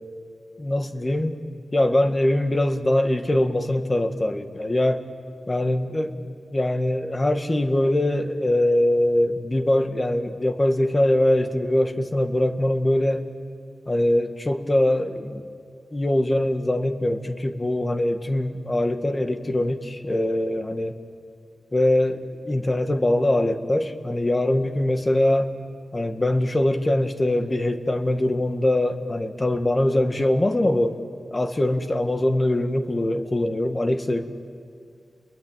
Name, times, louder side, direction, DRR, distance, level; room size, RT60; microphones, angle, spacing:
voice 1, 0.6-1.4 1.7-5.0 5.5-13.2 13.9-15.4 15.9-20.9 21.7-25.5 25.9-31.0 31.3-34.3, left 1 dB, 30° left, 8 dB, 1.8 m, -22 dB
29.5 x 22.0 x 9.1 m, 2.2 s
wide cardioid pair, 70°, 0 cm